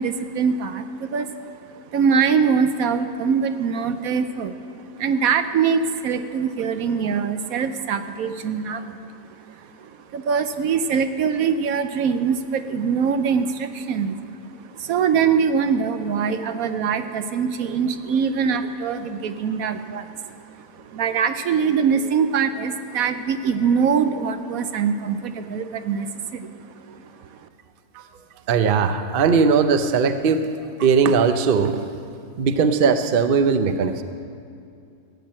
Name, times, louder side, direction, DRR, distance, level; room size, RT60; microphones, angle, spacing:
voice 1, 0.0-1.5 1.9-4.5 4.9-9.0 9.6-14.3 14.6-26.5 26.9-27.1, right 6 dB, 70° right, 9 dB, 1.1 m, -23 dB
voice 2, 28.5-30.4 30.8-31.8 32.4-34.0, right 5 dB, 50° right, 9 dB, 0.7 m, -19 dB
15.5 x 9.1 x 7.5 m, 2.5 s
omnidirectional pair, 1.6 m